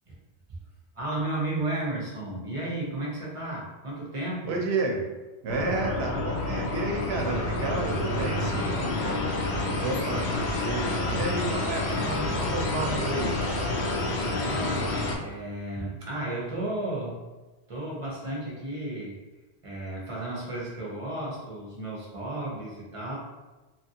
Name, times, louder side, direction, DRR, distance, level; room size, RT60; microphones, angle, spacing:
voice 1, 0.9-4.6 14.1-17.2 17.7-19.2 19.6-23.2, right 1 dB, 35° right, -5 dB, 0.6 m, -33 dB
voice 2, 4.5-5.0 5.4-13.3, right 2 dB, 80° right, 1 dB, 0.8 m, -32 dB
sound 1, 5.5-15.1, left 2 dB, 80° left, 0.8 m, -28 dB
2.9 x 2.5 x 2.7 m, 1.2 s
omnidirectional pair, 1.1 m